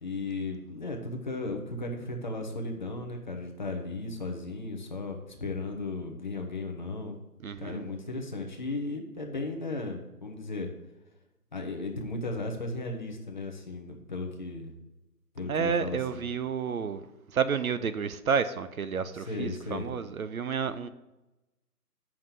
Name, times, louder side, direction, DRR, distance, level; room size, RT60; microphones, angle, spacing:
voice 1, 0.0-7.2 7.6-10.7 11.5-14.7 15.3-16.3 19.1-19.9, left 2 dB, 30° left, 3 dB, 0.9 m, -35 dB
voice 2, 7.4-7.8 15.5-17.0 17.3-20.9, right 6 dB, 60° right, 12 dB, 0.7 m, -30 dB
7.5 x 5.9 x 6.5 m, 1.0 s
hypercardioid pair, 165°, 47 cm